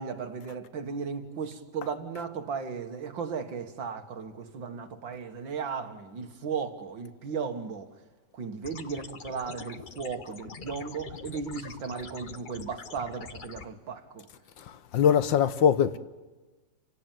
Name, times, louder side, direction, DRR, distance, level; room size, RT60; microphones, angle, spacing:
voice 1, 0.0-7.9 8.3-14.3, right 5 dB, 70° right, 2.4 m, -36 dB
sound 1, 8.6-13.6, left 5 dB, 40° left, 0.7 m, -44 dB
voice 2, 14.6-16.0, left 8 dB, 70° left, 1.7 m, -23 dB
28.0 x 17.0 x 9.1 m
omnidirectional pair, 2.1 m